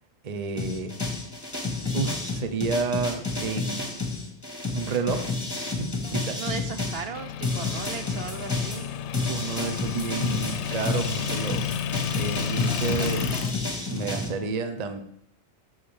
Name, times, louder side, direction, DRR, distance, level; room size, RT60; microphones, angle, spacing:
voice 1, 0.2-1.0 1.5-3.9 4.7-5.3 5.8-6.4 9.3-11.8 12.1-13.4 13.9-15.0, right 5 dB, 40° right, 8 dB, 0.8 m, -30 dB
sound 1, 0.6-7.0 7.4-14.3, left 3 dB, 20° left, 1.6 m, -30 dB
voice 2, 6.3-8.9, right 5 dB, 65° right, 8 dB, 1.0 m, -36 dB
Motor vehicle (road) / Engine, 7.1-13.5, left 8 dB, 80° left, 0.9 m, -31 dB
8.3 x 5.8 x 7.1 m, 0.72 s
omnidirectional pair, 1.2 m